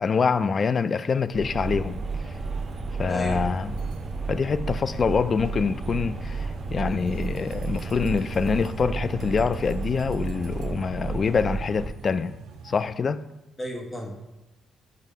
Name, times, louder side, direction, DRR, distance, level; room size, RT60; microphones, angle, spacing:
voice 1, 0.0-2.0 3.0-3.7 4.3-12.4 12.6-13.2, left 5 dB, 40° left, 0.3 m, -25 dB
sound 1, 1.3-11.9, right 4 dB, 35° right, 0.6 m, -32 dB
sound 2, 1.6-12.8, right 5 dB, 80° right, 0.6 m, -46 dB
voice 2, 3.1-3.4 12.6-12.7 13.6-14.2, equal, 20° left, 1.3 m, -34 dB
7.3 x 2.7 x 5.2 m
cardioid pair, 100°, 0 cm